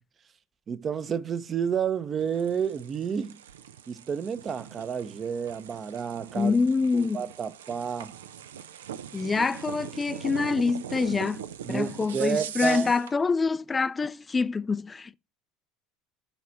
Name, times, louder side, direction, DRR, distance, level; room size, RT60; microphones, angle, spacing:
voice 1, 0.7-3.4 3.9-6.6 6.9-8.1 11.7-12.9, right 7 dB, 35° right, 0.8 m, -30 dB
sound 1, 2.2-13.2, right 9 dB, 85° right, 0.4 m, -41 dB
voice 2, 6.3-7.2 9.1-11.4 11.7-15.1, left 4 dB, 25° left, 0.4 m, -26 dB
7.2 x 4.2 x 5.8 m
hypercardioid pair, 75°, 0 cm